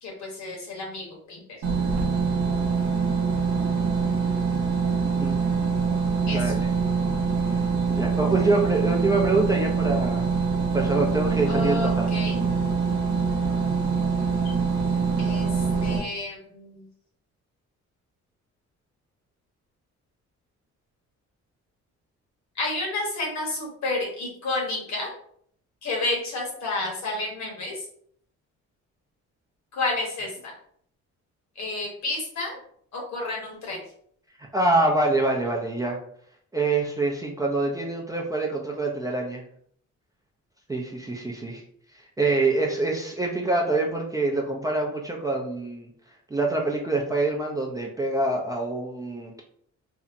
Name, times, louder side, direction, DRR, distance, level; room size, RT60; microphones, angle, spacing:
voice 1, 0.0-1.6 6.3-6.5 11.4-12.4 15.2-15.5 15.8-16.9 22.6-25.1 25.8-27.8 29.7-30.5 31.6-32.6 32.9-33.8, left 2 dB, 65° left, -1 dB, 1.1 m, -30 dB
sound 1, 1.6-16.0, right 5 dB, 80° right, 0.7 m, -24 dB
voice 2, 5.0-5.3 6.3-6.7 7.9-10.3 10.7-12.1 34.5-36.0 36.5-39.4 40.7-41.6 42.2-45.9 46.3-49.4, right 2 dB, 10° right, -1 dB, 0.4 m, -25 dB
2.7 x 2.1 x 2.5 m, 0.63 s
cardioid pair, 90°, 30 cm